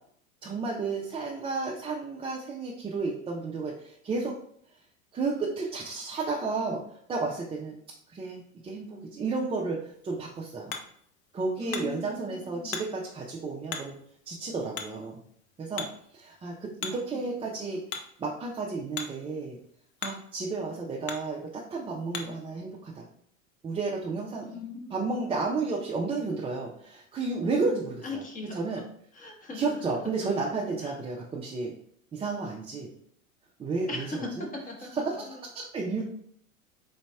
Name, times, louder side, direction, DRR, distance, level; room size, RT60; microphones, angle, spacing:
voice 1, 0.4-4.4 5.1-7.8 8.1-10.7 11.3-13.9 14.3-15.2 15.6-15.9 16.1-17.8 18.2-19.6 20.0-23.1 23.6-24.5 24.9-28.0 28.5-28.8 29.5-31.7 32.1-32.9 33.6-34.1 34.4-34.5 34.9-36.0, right 3 dB, 15° right, -3 dB, 0.4 m, -32 dB
Hammer, 9.8-22.5, left 6 dB, 35° left, 0.6 m, -43 dB
voice 2, 11.6-12.8 16.9-17.2 24.4-25.1 28.0-28.9 29.1-30.0 30.8-31.0 33.9-35.4, left 2 dB, 20° left, 0 dB, 1.1 m, -40 dB
4.0 x 4.0 x 2.2 m, 0.64 s
hypercardioid pair, 90°, 41 cm